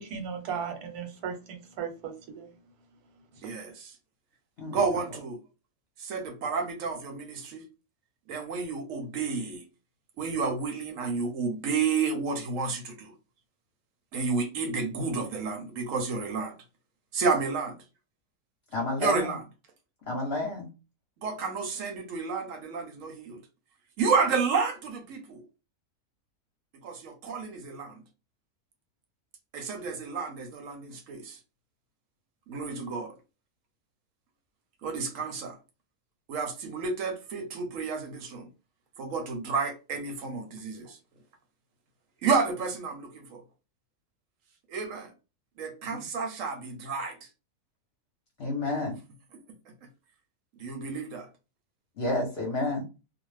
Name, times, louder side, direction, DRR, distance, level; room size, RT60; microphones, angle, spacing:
voice 1, 0.0-2.5, right 6 dB, 90° right, 1.2 m, -36 dB
voice 2, 3.4-3.9 4.7-5.4 6.0-7.6 8.3-9.6 10.2-13.1 14.1-16.5 17.1-17.8 19.0-19.4 21.2-23.4 24.0-25.4 26.8-28.0 29.5-31.4 32.5-33.1 34.8-35.6 36.3-38.5 39.0-41.0 42.2-43.4 44.7-45.1 45.6-47.3 50.6-51.3, right 4 dB, 70° right, 0.9 m, -31 dB
voice 3, 18.7-19.3 20.1-20.7 45.9-46.0 48.4-49.0 52.0-52.8, left 2 dB, 50° left, 0.8 m, -30 dB
2.5 x 2.1 x 3.1 m
omnidirectional pair, 1.6 m